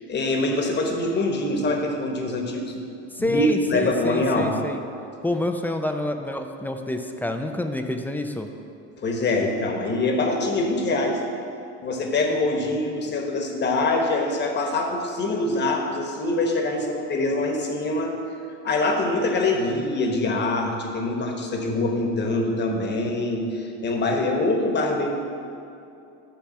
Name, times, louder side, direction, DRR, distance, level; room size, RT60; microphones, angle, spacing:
voice 1, 0.0-2.8 3.2-4.5 9.0-11.2 11.8-18.1 18.6-25.2, left 2 dB, 30° left, 2 dB, 1.1 m, -24 dB
voice 2, 3.1-4.8 5.2-8.5, left 1 dB, 5° left, 5 dB, 0.4 m, -27 dB
10.0 x 3.4 x 7.0 m, 2.6 s
supercardioid pair, 120°, 35 cm